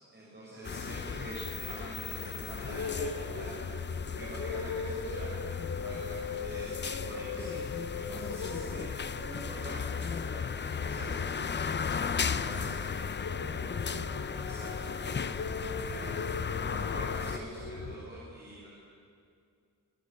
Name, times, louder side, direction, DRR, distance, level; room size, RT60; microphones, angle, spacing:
voice 1, 0.1-3.5 4.1-18.7, right 1 dB, 30° right, -6 dB, 7.1 m, -46 dB
sound 1, 0.6-17.4, left 6 dB, 30° left, 0.7 m, -35 dB
sound 2, 2.4-18.0, left 4 dB, 60° left, 3.8 m, -40 dB
27.0 x 18.5 x 9.6 m, 2.4 s
wide cardioid pair, 140°, 34 cm